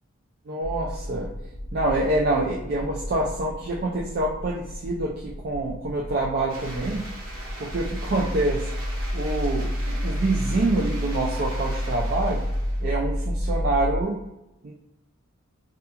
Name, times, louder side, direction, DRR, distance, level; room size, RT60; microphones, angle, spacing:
voice 1, 0.5-1.3 1.7-7.1 7.6-8.7 9.1-12.5 12.8-14.2 14.6-14.7, right 2 dB, 45° right, -2 dB, 0.3 m, -26 dB
sound 1, 0.6-14.0, equal, 40° left, 0.4 m, -30 dB
sound 2, 6.5-13.0, right 1 dB, 90° right, 0.9 m, -41 dB
2.4 x 2.3 x 2.7 m, 0.89 s
head